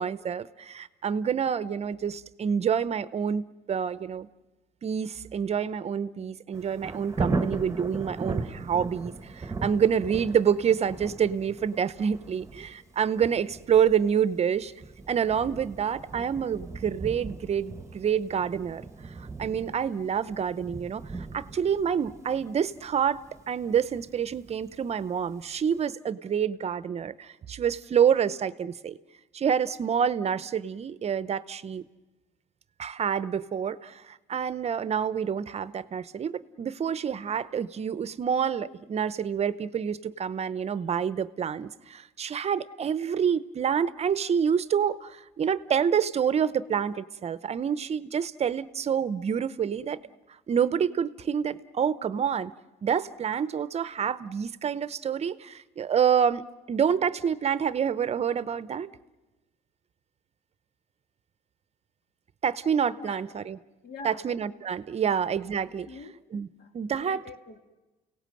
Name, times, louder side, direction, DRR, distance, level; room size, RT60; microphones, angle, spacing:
voice 1, 0.0-4.3 4.8-14.7 15.1-23.2 23.5-29.0 29.3-31.8 32.8-50.0 50.5-52.5 52.8-56.4 56.7-58.9 62.4-63.6 64.0-65.9 66.3-66.5 66.7-67.2, right 7 dB, 40° right, 15 dB, 0.7 m, -27 dB
Thunder, 6.5-25.3 25.8-25.9, right 3 dB, 15° right, 1.1 m, -38 dB
voice 2, 63.8-64.3 65.0-65.3 65.8-66.2 66.6-67.6, left 4 dB, 60° left, 5 dB, 2.4 m, -45 dB
29.5 x 17.5 x 7.7 m, 1.1 s
cardioid pair, 110°, 17 cm